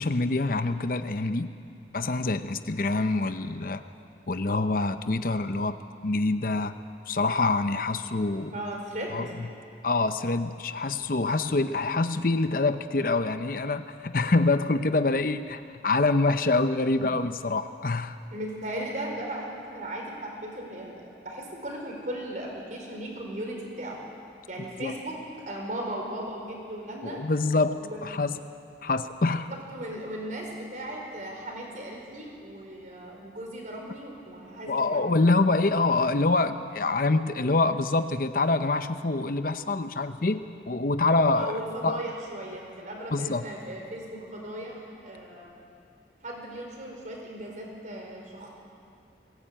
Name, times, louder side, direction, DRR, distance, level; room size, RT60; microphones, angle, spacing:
voice 1, 0.0-1.5 1.9-3.8 4.3-6.8 7.1-8.5 9.1-9.3 9.8-18.1 24.6-25.0 27.0-28.4 28.8-29.5 34.7-42.0 43.1-43.4, left 3 dB, 50° left, 10 dB, 0.7 m, -26 dB
voice 2, 8.5-9.2 18.3-24.0 24.5-25.2 25.4-27.2 27.8-28.1 29.4-35.2 41.3-45.5 46.2-48.5, right 1 dB, 45° right, 0 dB, 4.6 m, -37 dB
21.5 x 17.5 x 8.9 m, 2.4 s
head